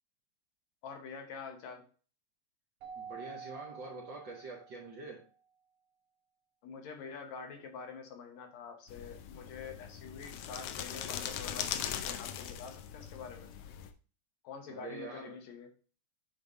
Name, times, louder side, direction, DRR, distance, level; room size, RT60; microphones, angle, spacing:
voice 1, 0.8-1.8 6.6-13.5 14.4-15.7, left 5 dB, 70° left, 4 dB, 2.2 m, -46 dB
Keyboard (musical), 2.8-5.1, right 6 dB, 80° right, 2.6 m, -48 dB
voice 2, 2.9-5.2 14.7-15.3, right 3 dB, 50° right, -2 dB, 1.6 m, -45 dB
sound 1, 8.9-13.9, left 9 dB, 90° left, 1.3 m, -40 dB
8.8 x 3.5 x 4.0 m, 0.39 s
omnidirectional pair, 3.4 m